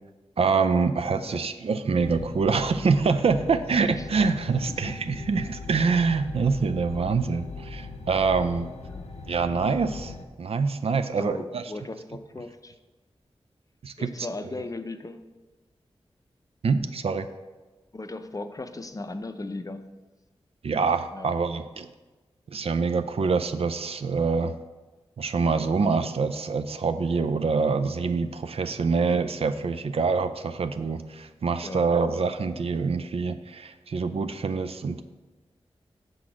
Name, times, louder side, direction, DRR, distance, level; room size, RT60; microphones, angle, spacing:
voice 1, 0.4-8.7 9.3-11.6 13.8-14.1 14.6-14.7 16.6-17.3 20.6-21.9 22.5-24.5 25.2-35.0, right 4 dB, 65° right, 9 dB, 0.4 m, -25 dB
sound 1, 2.0-10.3, left 3 dB, 85° left, 0.6 m, -39 dB
voice 2, 3.7-4.1 4.7-5.0 8.8-9.1 11.2-12.8 14.0-15.2 17.9-19.9 21.1-21.3 31.6-31.9, left 2 dB, 35° left, 8 dB, 0.5 m, -37 dB
6.0 x 3.8 x 6.1 m, 1.2 s
cardioid pair, 50°, 11 cm